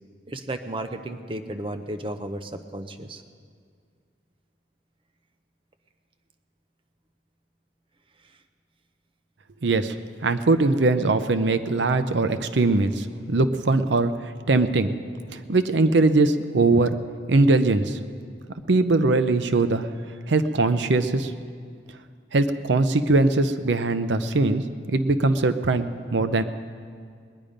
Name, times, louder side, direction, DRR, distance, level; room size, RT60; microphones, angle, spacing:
voice 1, 0.3-3.2, right 1 dB, 30° right, 7 dB, 0.6 m, -33 dB
voice 2, 9.6-9.9 10.2-14.1 14.5-14.9 15.3-17.0 17.3-18.0 18.7-19.9 20.3-21.3 22.3-24.6 24.9-26.4, right 2 dB, 80° right, 11 dB, 0.6 m, -21 dB
20.5 x 10.0 x 5.2 m, 2.1 s
head